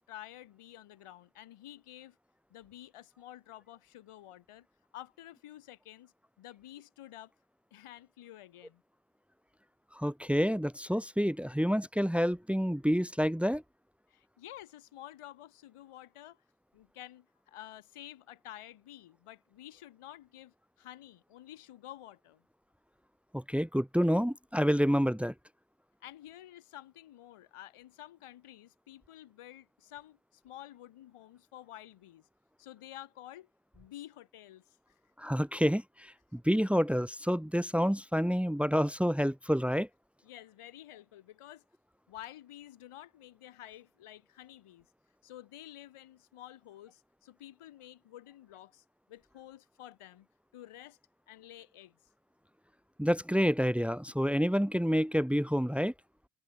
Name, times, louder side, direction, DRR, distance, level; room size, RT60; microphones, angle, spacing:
voice 1, 0.0-2.2 2.5-4.7 4.9-7.3 7.7-8.8 14.1-16.4 16.7-22.4 26.0-32.3 32.6-33.5 33.7-34.6 40.2-41.6 42.1-44.9 45.2-50.3 50.5-51.0 51.3-52.0, left 13 dB, 85° left, 5.6 m, -50 dB
voice 2, 10.0-13.6 23.3-25.3 35.2-39.9 53.0-55.9, equal, ahead, 1.7 m, -28 dB
cardioid pair, 75°, 50 cm